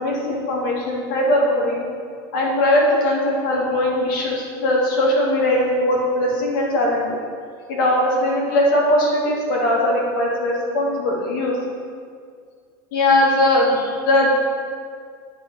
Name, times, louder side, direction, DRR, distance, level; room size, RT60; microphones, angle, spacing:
voice 1, 0.0-1.8 2.3-7.1 7.7-11.6 12.9-14.3, left 1 dB, 75° left, -4 dB, 3.2 m, -20 dB
10.5 x 5.2 x 7.9 m, 2.1 s
supercardioid pair, 160°, 11 cm